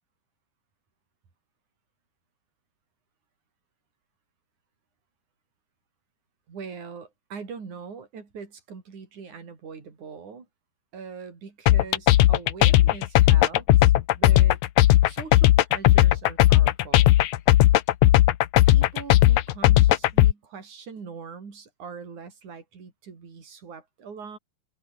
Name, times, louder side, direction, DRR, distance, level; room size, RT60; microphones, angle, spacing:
voice 1, 6.5-10.5 10.9-14.6 15.1-17.1 18.6-24.4, right 5 dB, 45° right, 6.1 m, -42 dB
sound 1, 11.7-20.3, left 14 dB, 90° left, 1.6 m, -17 dB
open air
omnidirectional pair, 4.8 m